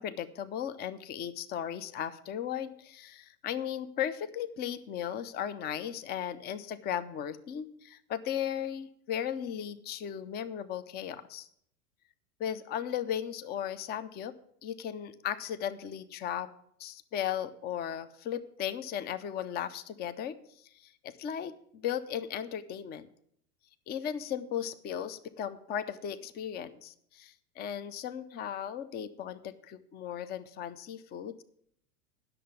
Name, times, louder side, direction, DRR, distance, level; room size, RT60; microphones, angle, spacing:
voice 1, 0.0-11.5 12.4-14.4 14.6-16.5 16.8-20.4 20.7-23.1 23.9-31.4, left 9 dB, 20° left, 14 dB, 0.5 m, -36 dB
10.0 x 6.8 x 8.1 m, 0.69 s
hypercardioid pair, 100°, 46 cm